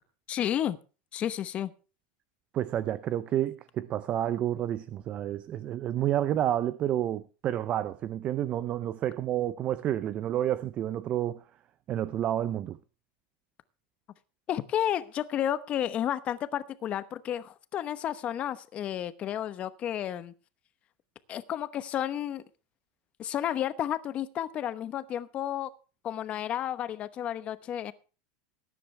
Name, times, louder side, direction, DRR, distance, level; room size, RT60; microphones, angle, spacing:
voice 1, 0.3-0.8 1.1-1.7 14.5-20.3 21.3-22.4 23.2-25.7 26.0-27.9, left 10 dB, 25° left, 0.9 m, -31 dB
voice 2, 2.5-11.4 11.9-12.8, right 11 dB, 25° right, 0.5 m, -30 dB
18.5 x 10.0 x 3.3 m
supercardioid pair, 165°, 5 cm